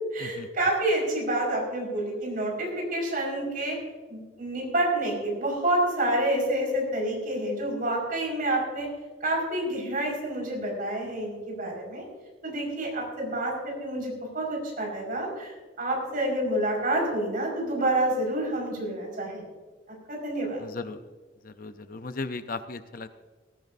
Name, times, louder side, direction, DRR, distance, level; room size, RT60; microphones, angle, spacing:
voice 1, 0.1-3.8 4.1-8.9 9.2-12.0 12.4-19.5 20.1-20.6, right 1 dB, 50° right, -1 dB, 5.2 m, -28 dB
voice 2, 20.6-21.0 21.4-23.1, left 3 dB, 50° left, 10 dB, 0.6 m, -36 dB
18.5 x 15.0 x 2.7 m, 1.3 s
head